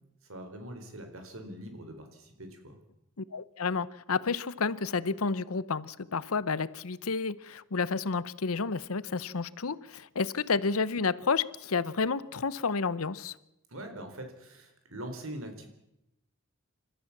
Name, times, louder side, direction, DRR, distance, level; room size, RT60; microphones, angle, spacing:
voice 1, 0.2-2.8 13.7-15.7, right 1 dB, 75° right, 4.3 m, -43 dB
voice 2, 3.2-13.3, left 4 dB, 85° left, 0.8 m, -30 dB
29.0 x 13.5 x 7.3 m
head